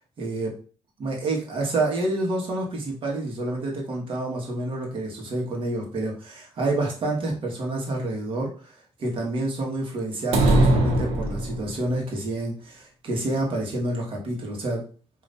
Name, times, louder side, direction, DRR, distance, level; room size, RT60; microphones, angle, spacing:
voice 1, 0.2-0.5 1.0-8.5 9.0-14.8, right 2 dB, 60° right, -1 dB, 1.7 m, -28 dB
sound 1, 10.3-11.9, right 1 dB, 75° right, 1.0 m, -20 dB
5.2 x 3.1 x 2.7 m, 0.39 s
supercardioid pair, 70°, 10 cm